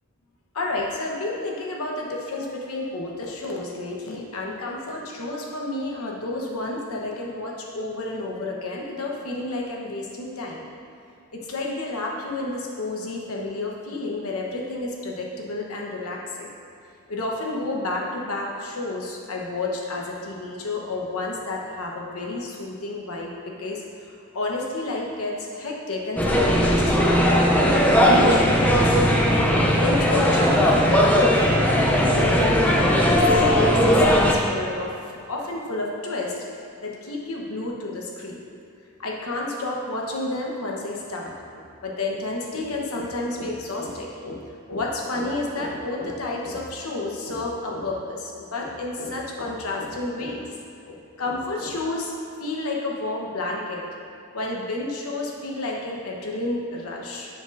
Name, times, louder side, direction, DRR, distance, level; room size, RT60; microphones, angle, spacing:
voice 1, 0.5-10.6 11.3-16.5 17.1-23.8 24.3-27.5 28.0-28.9 29.7-34.9 35.3-36.4 36.8-38.4 39.0-44.4 44.7-50.4 50.9-52.1 52.4-53.8 54.3-57.3, left 2 dB, 80° left, -1 dB, 1.0 m, -30 dB
sound 1, 26.2-34.3, equal, 5° left, 0.5 m, -18 dB
10.0 x 5.2 x 2.6 m, 2.7 s
head